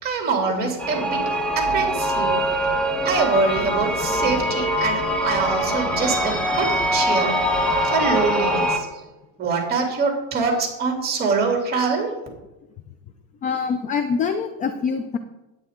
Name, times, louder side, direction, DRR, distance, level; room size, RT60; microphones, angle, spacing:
voice 1, 0.0-2.5 3.0-9.0 9.4-12.1, right 4 dB, 25° right, 1 dB, 2.8 m, -24 dB
sound 1, 0.8-8.8, equal, ahead, 1.1 m, -23 dB
voice 2, 13.4-15.2, left 6 dB, 20° left, 9 dB, 0.3 m, -25 dB
10.0 x 9.1 x 3.7 m, 1.0 s
supercardioid pair, 145°, 39 cm